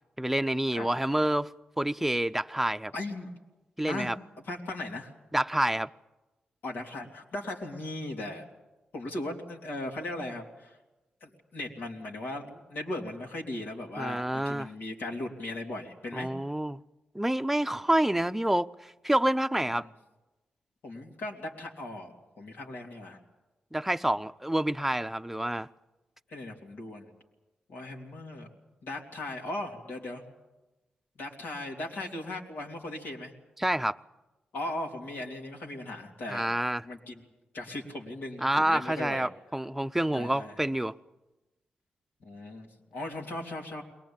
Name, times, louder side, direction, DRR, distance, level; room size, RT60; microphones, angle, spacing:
voice 1, 0.2-1.5 1.8-2.9 3.8-4.2 5.3-5.9 14.0-14.7 16.1-16.8 17.1-19.9 23.7-25.7 33.6-34.0 36.3-36.8 38.4-40.9, right 1 dB, 5° right, 0.7 m, -28 dB
voice 2, 2.9-3.3 3.9-4.1 4.4-5.1 6.6-8.4 8.9-10.8 11.2-16.3 19.6-19.9 20.8-23.2 26.3-27.1 27.7-28.5 28.8-30.2 31.2-33.3 34.5-36.5 36.8-37.2 37.5-39.3 40.1-40.5 42.2-43.8, left 2 dB, 80° left, 3.3 m, -38 dB
22.0 x 18.5 x 8.9 m
cardioid pair, 60°, 3 cm